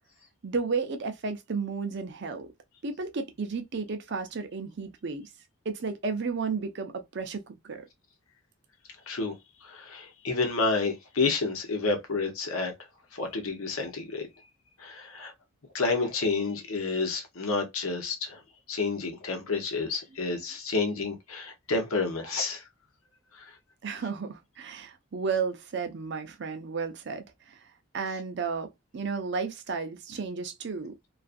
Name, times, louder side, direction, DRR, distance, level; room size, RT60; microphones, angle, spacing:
voice 1, 0.4-2.5 2.8-5.3 5.7-7.8 23.8-27.6 27.9-28.7 28.9-30.9, right 5 dB, 50° right, 0.5 m, -33 dB
voice 2, 9.6-12.7 13.1-14.3 14.8-15.3 15.7-18.4 18.7-22.6 23.4-23.5, left 3 dB, 75° left, 0.9 m, -29 dB
2.4 x 2.4 x 2.5 m
head